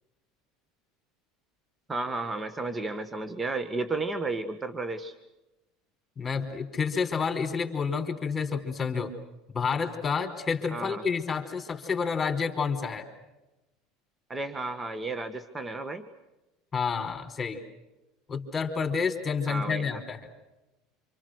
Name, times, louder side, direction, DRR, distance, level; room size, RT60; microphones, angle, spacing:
voice 1, 1.9-5.1 10.7-11.0 14.3-16.0 19.5-19.9, right 3 dB, 20° right, 9 dB, 1.8 m, -33 dB
voice 2, 6.2-9.1 9.5-13.1 16.7-17.6 18.3-20.2, left 5 dB, 25° left, 5 dB, 4.6 m, -29 dB
28.5 x 27.0 x 6.5 m, 1.0 s
hypercardioid pair, 90°, 0 cm